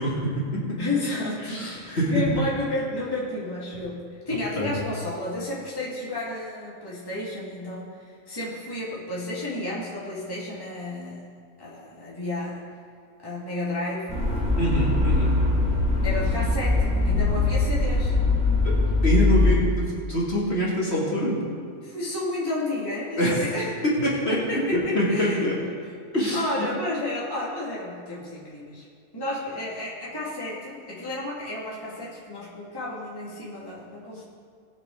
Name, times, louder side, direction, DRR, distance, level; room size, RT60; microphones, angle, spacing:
voice 1, 0.0-0.8 1.4-2.2 4.6-4.7 14.6-15.3 18.6-18.7 19.0-21.4 23.2-23.4 23.8-25.6 26.1-26.4, equal, 45° left, -6 dB, 2.8 m, -25 dB
voice 2, 0.8-11.3 11.6-12.6 13.2-14.3 16.0-18.2 21.8-23.7 24.3-25.5 26.3-28.9 29.1-34.2, left 2 dB, 15° left, -7 dB, 2.1 m, -31 dB
sound 1, 14.1-19.6, left 3 dB, 35° right, 3.4 m, -22 dB
20.5 x 7.2 x 3.8 m, 2.2 s
omnidirectional pair, 1.5 m